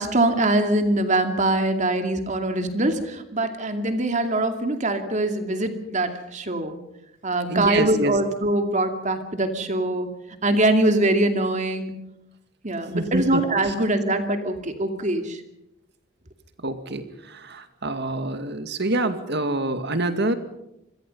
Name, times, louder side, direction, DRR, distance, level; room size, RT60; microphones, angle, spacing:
voice 1, 0.0-6.7 7.2-10.1 10.4-11.9 12.6-15.4, right 1 dB, 40° right, 6 dB, 2.4 m, -23 dB
voice 2, 7.5-8.1 12.9-13.7 16.6-20.3, right 2 dB, 60° right, 9 dB, 2.1 m, -26 dB
26.5 x 21.5 x 5.5 m, 0.86 s
head